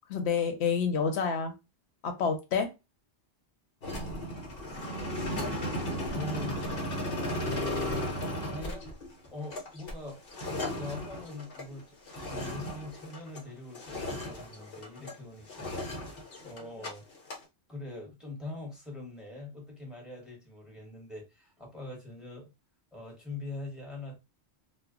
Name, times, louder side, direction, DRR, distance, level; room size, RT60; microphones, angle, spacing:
voice 1, 0.1-1.5 2.0-2.7, left 6 dB, 80° left, 0.9 m, -28 dB
sound 1, 3.8-13.5 13.8-15.2 15.5-16.9 17.2-17.4, left 1 dB, 60° left, 1.0 m, -35 dB
voice 2, 6.0-6.6 8.0-8.8 9.2-10.2 10.8-12.0 12.3-17.1 17.7-22.5 22.9-24.1, left 2 dB, ahead, 0.9 m, -43 dB
2.1 x 2.0 x 3.5 m
omnidirectional pair, 1.1 m